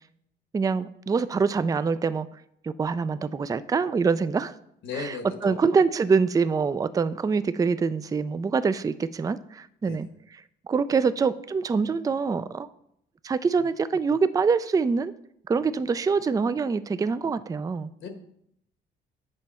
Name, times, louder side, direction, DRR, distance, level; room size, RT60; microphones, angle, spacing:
voice 1, 0.5-2.3 2.6-4.5 5.0-5.2 5.4-10.1 10.7-12.7 13.2-15.1 15.5-17.9, right 5 dB, 20° right, 14 dB, 0.3 m, -25 dB
voice 2, 4.8-5.6 9.8-10.1 18.0-18.1, left 5 dB, 70° left, 6 dB, 1.3 m, -36 dB
8.0 x 5.2 x 4.3 m, 0.73 s
cardioid pair, 90°, 20 cm